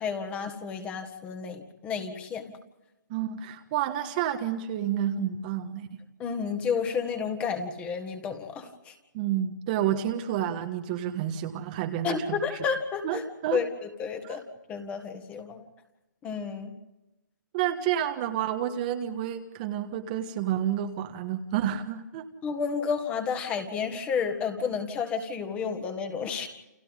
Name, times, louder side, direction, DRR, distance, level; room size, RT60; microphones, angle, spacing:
voice 1, 0.0-2.5 6.2-8.9 12.0-13.2 13.5-13.7 14.0-14.4 14.7-15.7 16.2-16.7 22.4-26.5, left 6 dB, 15° left, 7 dB, 1.8 m, -31 dB
voice 2, 3.1-6.0 9.1-12.4 13.0-13.6 14.2-14.4 17.5-22.3, right 10 dB, 25° right, 6 dB, 1.4 m, -30 dB
29.5 x 28.0 x 3.7 m, 1.0 s
hypercardioid pair, 165°, 10 cm